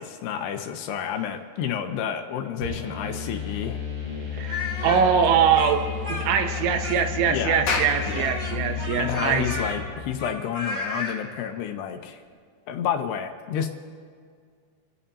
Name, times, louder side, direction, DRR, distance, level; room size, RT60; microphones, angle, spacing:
voice 1, 0.0-3.8 7.3-7.7 8.1-8.4 9.0-12.2 12.7-13.7, left 8 dB, 80° left, 5 dB, 2.6 m, -30 dB
sound 1, 2.6-10.3, left 7 dB, 60° right, 7.1 m, -33 dB
voice 2, 4.3-5.8 6.1-9.5, right 7 dB, 85° right, 6 dB, 3.2 m, -23 dB
Speech, 4.4-7.3 7.9-11.2, left 2 dB, 15° left, 2.9 m, -33 dB
Clapping, 7.4-12.3, left 4 dB, 45° left, 3.4 m, -34 dB
28.0 x 15.5 x 2.8 m, 2.1 s
omnidirectional pair, 5.4 m